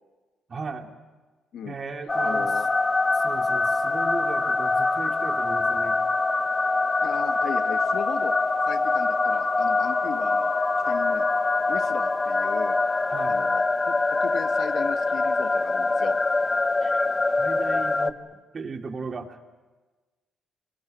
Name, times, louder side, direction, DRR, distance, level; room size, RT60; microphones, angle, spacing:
voice 1, 0.5-0.9 1.6-2.6 3.1-6.0 13.1-13.4 16.8-17.1 17.3-18.2 18.5-19.4, right 4 dB, 40° right, 4 dB, 2.9 m, -36 dB
sound 1, 2.1-18.1, left 3 dB, 25° left, 1.1 m, -24 dB
voice 2, 2.2-2.7 7.0-8.3 8.6-10.5 10.9-11.2 11.7-12.8 13.3-16.2, left 8 dB, 70° left, 9 dB, 1.5 m, -36 dB
26.0 x 22.5 x 9.3 m, 1.3 s
cardioid pair, 90°, 0 cm